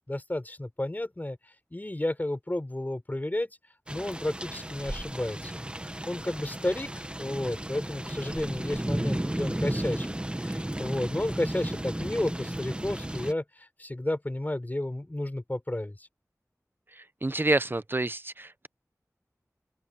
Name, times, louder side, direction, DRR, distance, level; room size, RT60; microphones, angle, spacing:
voice 1, 0.0-3.6 3.9-5.7 6.1-10.1 10.4-16.1, left 1 dB, 30° left, 5.2 m, -32 dB
sound 1, 3.9-13.3, right 1 dB, 15° right, 1.3 m, -34 dB
voice 2, 17.2-18.7, right 2 dB, 35° right, 0.8 m, -28 dB
open air
wide cardioid pair, 50°, 6 cm